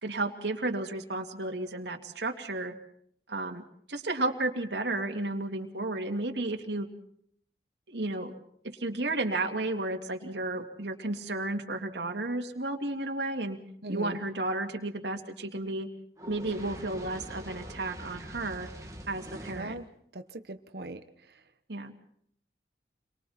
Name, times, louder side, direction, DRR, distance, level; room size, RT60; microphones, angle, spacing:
voice 1, 0.0-2.7 3.3-3.6 3.9-6.9 7.9-8.3 8.6-13.6 13.9-15.9 16.3-18.7 19.1-19.8 21.7-21.9, right 2 dB, 80° right, 3 dB, 2.5 m, -33 dB
voice 2, 13.8-14.2 19.5-19.8 20.1-21.0, right 1 dB, 65° right, 8 dB, 1.2 m, -39 dB
Fire, 16.2-19.8, equal, 20° right, 2.4 m, -43 dB
29.5 x 23.5 x 4.4 m, 0.66 s
head